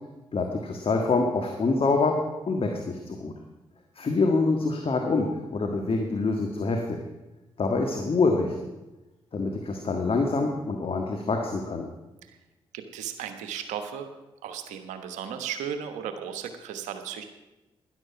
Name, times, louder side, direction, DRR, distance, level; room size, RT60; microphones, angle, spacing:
voice 1, 0.3-3.3 3.9-7.0 7.6-8.6 9.3-11.9, left 3 dB, 50° left, 3 dB, 1.6 m, -26 dB
voice 2, 12.7-14.1 14.4-17.2, right 8 dB, 80° right, 8 dB, 1.2 m, -35 dB
12.5 x 10.5 x 5.9 m, 1.0 s
hypercardioid pair, 40°, 12 cm